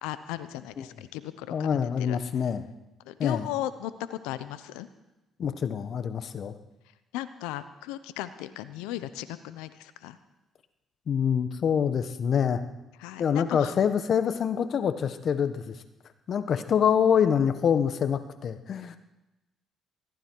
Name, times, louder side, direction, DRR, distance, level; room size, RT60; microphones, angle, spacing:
voice 1, 0.0-1.7 2.0-2.2 3.1-4.9 7.1-10.2 13.0-13.7, left 13 dB, 85° left, 13 dB, 0.8 m, -36 dB
voice 2, 1.5-2.6 3.2-3.5 5.4-6.5 11.1-12.6 13.2-15.7 16.3-19.0, left 7 dB, 60° left, 11 dB, 1.2 m, -25 dB
20.0 x 15.0 x 4.7 m, 1.0 s
supercardioid pair, 60°, 0 cm